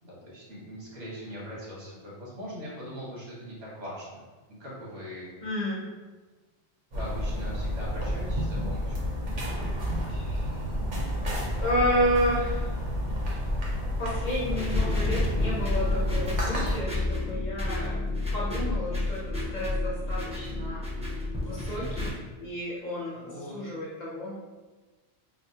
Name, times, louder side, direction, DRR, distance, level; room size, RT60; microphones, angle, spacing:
voice 1, 0.0-4.2 4.6-5.3 6.9-9.1 14.5-14.6 21.7-22.1 23.1-23.6, equal, 80° right, -6 dB, 1.5 m, -41 dB
voice 2, 5.4-5.9 10.1-10.5 11.6-12.8 14.0-18.0 18.3-20.9 21.4-22.1 22.4-24.4, equal, 50° left, -6 dB, 0.7 m, -31 dB
sound 1, 6.9-16.8, equal, 50° right, 0.7 m, -30 dB
sound 2, 14.5-22.1, left 2 dB, 10° right, 0.5 m, -30 dB
4.0 x 2.0 x 2.7 m, 1.3 s
omnidirectional pair, 1.2 m